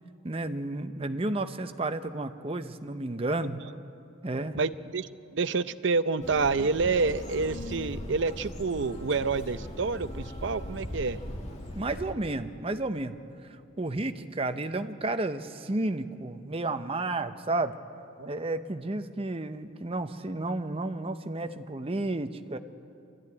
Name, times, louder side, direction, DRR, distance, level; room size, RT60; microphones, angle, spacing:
voice 1, 0.2-3.6 4.2-4.6 11.8-13.2 13.5-17.7 18.3-22.6, right 2 dB, 30° right, 9 dB, 0.8 m, -32 dB
voice 2, 4.6-11.2 18.2-18.3, right 4 dB, 65° right, 13 dB, 0.6 m, -28 dB
sound 1, 6.2-12.1, left 1 dB, 35° left, 2.4 m, -39 dB
24.5 x 13.5 x 9.7 m, 2.6 s
head